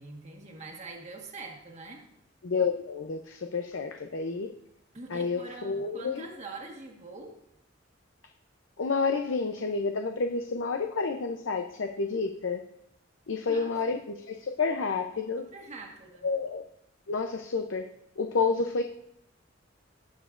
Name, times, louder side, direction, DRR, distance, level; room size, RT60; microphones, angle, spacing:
voice 1, 0.0-2.0 4.9-7.3 13.5-13.9 15.4-16.3, right 3 dB, 35° right, 1 dB, 1.5 m, -44 dB
voice 2, 2.4-4.5 5.1-6.3 8.8-12.6 13.3-15.4 16.2-16.6 17.1-17.9 18.2-18.8, left 4 dB, 80° left, 5 dB, 0.6 m, -30 dB
18.5 x 7.1 x 2.5 m, 0.78 s
head